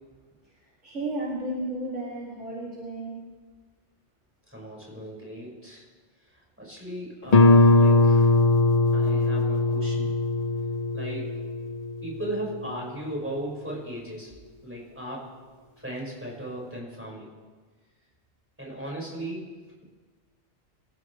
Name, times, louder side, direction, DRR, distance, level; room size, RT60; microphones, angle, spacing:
voice 1, 0.4-3.2, right 1 dB, 85° right, -6 dB, 3.4 m, -33 dB
voice 2, 4.5-5.8 6.6-8.3 8.9-10.1 10.9-11.3 12.0-14.3 14.6-15.3 15.8-17.3 18.6-19.5, right 1 dB, 10° right, -4 dB, 5.7 m, -36 dB
Guitar, 7.3-12.7, left 2 dB, 40° left, 0.7 m, -21 dB
28.0 x 14.0 x 3.3 m, 1.4 s
omnidirectional pair, 1.2 m